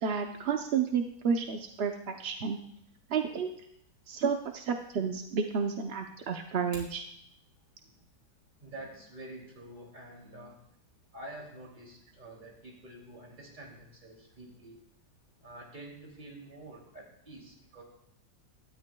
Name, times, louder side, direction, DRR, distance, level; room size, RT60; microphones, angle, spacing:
voice 1, 0.0-2.6 3.1-3.5 4.1-7.0, right 6 dB, 55° right, 4 dB, 0.7 m, -31 dB
sound 1, 6.5-7.0, left 2 dB, 70° left, 3.5 m, -48 dB
voice 2, 8.6-10.6 11.1-14.8 15.4-17.8, right 1 dB, 25° right, -1 dB, 2.9 m, -48 dB
18.0 x 12.5 x 2.3 m, 0.70 s
omnidirectional pair, 1.9 m